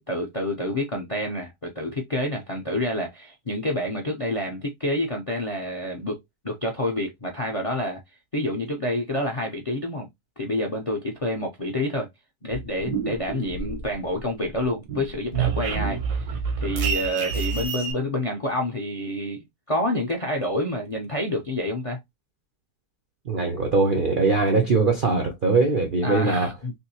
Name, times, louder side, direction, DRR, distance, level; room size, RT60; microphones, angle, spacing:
voice 1, 0.0-6.2 6.4-8.0 8.3-10.1 10.4-12.1 12.4-22.0 26.0-26.7, left 1 dB, 45° left, 0.4 m, -28 dB
sound 1, 12.5-14.2 14.5-17.9, right 6 dB, 80° right, 1.4 m, -28 dB
voice 2, 23.3-26.5, right 3 dB, 60° right, 0.5 m, -21 dB
3.6 x 2.7 x 2.7 m
omnidirectional pair, 1.7 m